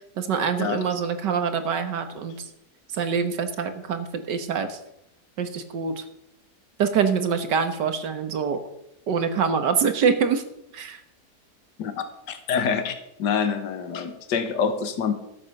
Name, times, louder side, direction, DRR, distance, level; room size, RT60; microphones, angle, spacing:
voice 1, 0.2-2.4 2.9-4.8 5.4-6.0 6.8-8.6 9.1-10.4 10.7-11.0, right 6 dB, 85° right, 8 dB, 1.9 m, -25 dB
voice 2, 12.3-12.9 13.2-15.1, left 6 dB, 80° left, 9 dB, 1.8 m, -26 dB
13.0 x 8.1 x 6.6 m, 0.84 s
omnidirectional pair, 1.8 m